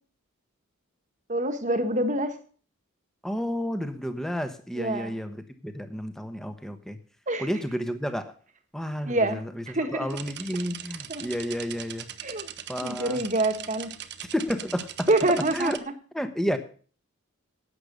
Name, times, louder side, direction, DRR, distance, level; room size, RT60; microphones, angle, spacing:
voice 1, 1.3-2.3 4.8-5.1 7.3-7.5 9.0-9.4 9.7-10.1 11.1-11.3 12.2-12.5 12.8-13.9 15.1-15.9, right 2 dB, 35° right, 7 dB, 1.5 m, -26 dB
voice 2, 3.2-7.0 7.4-8.3 8.7-12.1 12.7-13.2 14.3-15.1 15.5-15.8 16.1-16.6, equal, ahead, 8 dB, 1.1 m, -31 dB
sound 1, 10.1-15.8, right 10 dB, 50° right, 0.9 m, -40 dB
11.5 x 8.5 x 6.6 m, 0.42 s
head